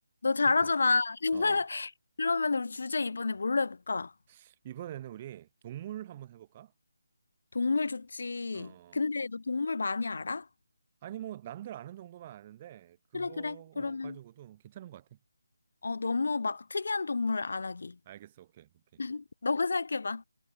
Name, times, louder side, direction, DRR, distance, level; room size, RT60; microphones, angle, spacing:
voice 1, 0.2-1.9 2.2-4.1 7.5-10.5 13.1-14.2 15.8-18.0 19.0-20.2, left 4 dB, 65° left, 0.7 m, -30 dB
voice 2, 1.3-1.6 4.3-6.7 8.5-9.0 11.0-15.2 18.1-19.0, right 12 dB, 25° right, 1.2 m, -45 dB
figure-of-eight pair, 160°, 0 cm